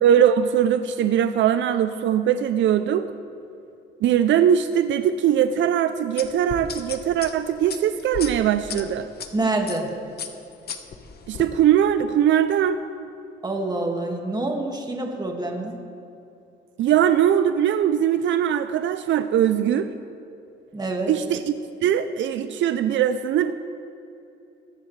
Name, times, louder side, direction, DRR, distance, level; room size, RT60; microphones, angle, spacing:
voice 1, 0.0-3.1 4.0-9.1 11.3-12.8 16.8-19.9 21.1-21.5 21.8-23.5, right 9 dB, 70° right, 11 dB, 0.5 m, -21 dB
sound 1, 6.2-9.3 9.7-9.9 10.2-11.5, left 6 dB, 55° left, 1.1 m, -35 dB
voice 2, 9.3-9.9 13.4-15.8 20.7-21.1, right 2 dB, 20° right, 2 dB, 2.0 m, -26 dB
22.0 x 10.5 x 3.3 m, 2.8 s
cardioid pair, 90°, 20 cm